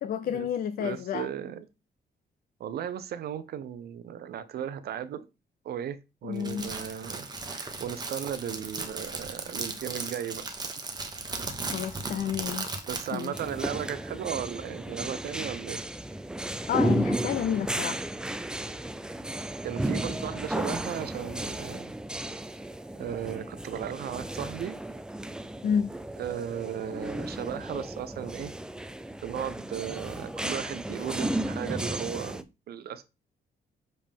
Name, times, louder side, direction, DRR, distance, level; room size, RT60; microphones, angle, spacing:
voice 1, 0.0-1.3 6.2-6.7 11.7-12.8 13.1-13.3 16.7-18.0 25.6-25.9, left 8 dB, 60° left, 0.5 m, -30 dB
voice 2, 0.8-1.7 2.6-5.2 5.6-10.4 12.8-15.8 19.6-21.9 23.0-24.8 26.2-28.5 29.2-33.0, right 9 dB, 70° right, 0.7 m, -36 dB
Crackle, 6.4-13.5, right 3 dB, 25° right, 1.1 m, -36 dB
sound 1, 13.3-32.4, right 1 dB, 5° right, 0.4 m, -34 dB
6.7 x 5.2 x 3.6 m
cardioid pair, 160°, 17 cm